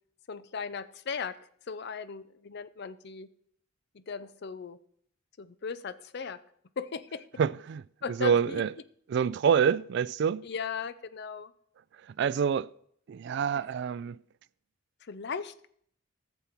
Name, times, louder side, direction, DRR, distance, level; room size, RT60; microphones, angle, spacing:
voice 1, 0.3-1.4 1.7-3.3 3.9-4.8 5.4-6.4 6.8-7.3 8.0-8.6 10.4-11.5 15.0-15.7, left 6 dB, 55° left, 0.5 m, -37 dB
voice 2, 7.4-7.8 8.1-8.7 9.1-10.5 12.1-12.7 13.1-14.2, right 7 dB, 60° right, 0.3 m, -27 dB
14.0 x 7.0 x 4.5 m
head